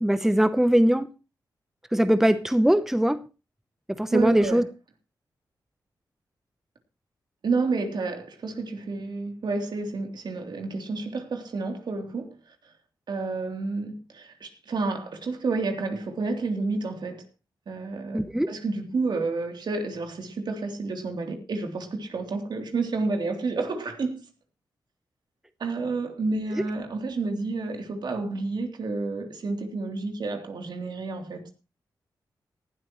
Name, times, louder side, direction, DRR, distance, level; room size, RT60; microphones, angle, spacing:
voice 1, 0.0-1.1 1.9-3.2 4.0-4.6 18.1-18.5, right 1 dB, 5° right, 0.9 m, -21 dB
voice 2, 4.1-4.6 7.4-12.3 13.1-17.2 17.7-24.3 25.6-31.5, right 3 dB, 70° right, 3.3 m, -30 dB
18.5 x 12.5 x 3.1 m
cardioid pair, 80°, 8 cm